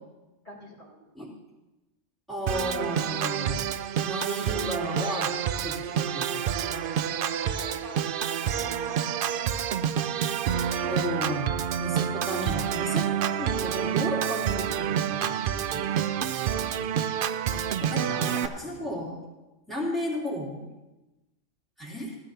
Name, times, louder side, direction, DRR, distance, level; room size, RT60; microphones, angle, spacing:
voice 1, 0.4-1.1 6.0-6.7 7.5-8.0 8.3-9.0 9.3-9.6 11.6-11.7 18.8-18.9, equal, 40° left, -7 dB, 2.7 m, -49 dB
voice 2, 2.3-3.7 4.0-5.3 5.6-6.7 10.9-15.2 15.5-15.9 17.5-19.2 19.7-20.7 21.8-22.2, equal, ahead, -6 dB, 3.1 m, -34 dB
Organ, 2.5-18.5, right 9 dB, 65° right, 0.6 m, -28 dB
16.5 x 13.0 x 2.8 m, 1.0 s
omnidirectional pair, 1.3 m